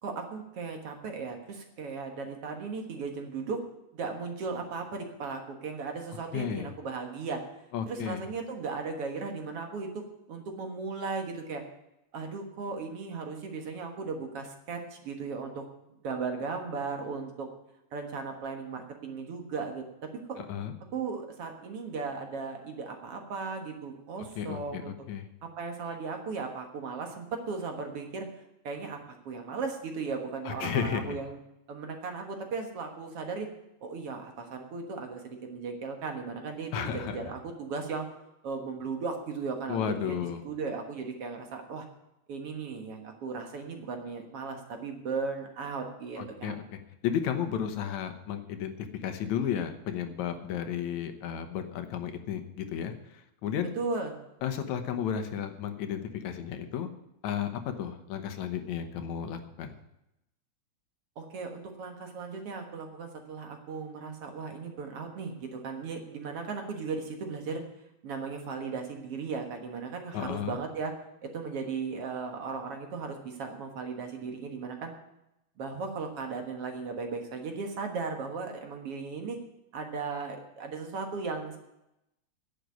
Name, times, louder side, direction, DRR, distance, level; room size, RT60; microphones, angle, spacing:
voice 1, 0.0-3.6 3.9-7.4 7.9-11.6 12.1-15.7 16.0-17.5 17.9-20.4 20.9-24.9 25.4-28.3 28.6-29.0 29.3-31.4 31.7-33.5 33.8-38.1 38.4-41.9 42.3-46.5 53.8-54.2 61.2-67.6 68.0-70.9 71.2-74.9 75.6-79.4 79.7-81.6, right 4 dB, 55° right, 4 dB, 2.3 m, -36 dB
voice 2, 6.3-6.7 7.7-8.2 20.4-20.7 24.4-25.3 30.5-31.2 36.7-37.2 39.7-40.4 46.2-53.7 54.4-56.9 57.2-59.8 70.1-70.6, left 8 dB, 80° left, 8 dB, 2.4 m, -33 dB
10.5 x 7.6 x 9.5 m, 0.87 s
omnidirectional pair, 3.3 m